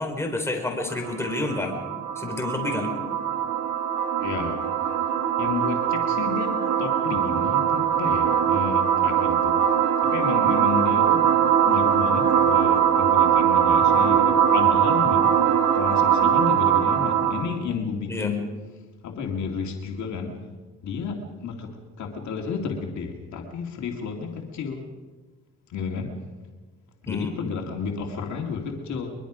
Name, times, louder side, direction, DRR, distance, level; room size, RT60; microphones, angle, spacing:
voice 1, 0.0-1.7 2.2-2.9 18.1-18.3 27.1-27.5, left 2 dB, 10° left, 2 dB, 4.4 m, -29 dB
sound 1, 0.9-17.6, right 9 dB, 80° right, 1.9 m, -21 dB
voice 2, 4.2-4.6 5.4-9.5 10.1-11.3 11.6-15.3 15.7-18.4 19.0-20.3 20.8-21.7 22.0-24.8 25.7-26.1 27.1-29.1, left 5 dB, 70° left, 2 dB, 2.5 m, -31 dB
22.5 x 22.5 x 5.1 m, 1.3 s
cardioid pair, 90°, 30 cm